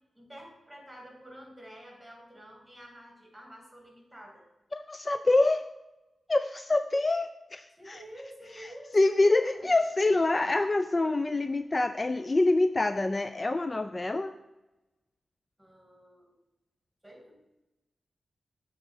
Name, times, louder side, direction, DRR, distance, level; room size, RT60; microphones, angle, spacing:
voice 1, 0.1-4.4 7.8-9.7 15.6-16.3 17.0-17.4, equal, 10° right, 0 dB, 2.6 m, -49 dB
voice 2, 4.7-5.6 6.3-8.0 8.6-14.3, left 2 dB, 35° left, 10 dB, 0.3 m, -26 dB
8.0 x 3.7 x 6.5 m, 1.0 s
cardioid pair, 60°, 0 cm